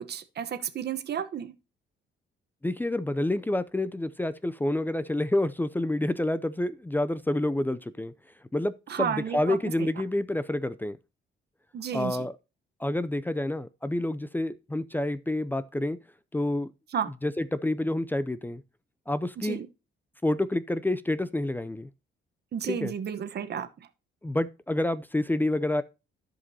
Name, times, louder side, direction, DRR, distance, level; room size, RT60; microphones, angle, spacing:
voice 1, 0.0-1.5 8.9-9.9 11.7-12.3 16.9-17.1 19.4-19.7 22.5-23.7, right 8 dB, 55° right, 1.0 m, -32 dB
voice 2, 2.6-8.1 8.5-11.0 11.9-12.3 12.8-16.0 16.3-16.7 17.2-18.6 19.1-19.6 20.2-21.9 22.7-22.9 24.2-25.8, left 1 dB, 10° left, 0.4 m, -28 dB
14.0 x 5.2 x 2.8 m
cardioid pair, 90°, 20 cm